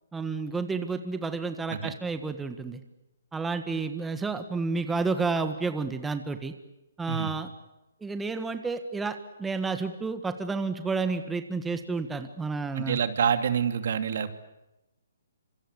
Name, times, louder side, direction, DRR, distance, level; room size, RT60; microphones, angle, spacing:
voice 1, 0.1-2.8 3.3-6.5 7.0-7.5 8.0-13.0, right 4 dB, 10° right, 8 dB, 1.6 m, -30 dB
voice 2, 12.7-14.3, right 7 dB, 60° right, 9 dB, 2.6 m, -27 dB
26.5 x 25.5 x 8.2 m, 0.95 s
hypercardioid pair, 150°, 0 cm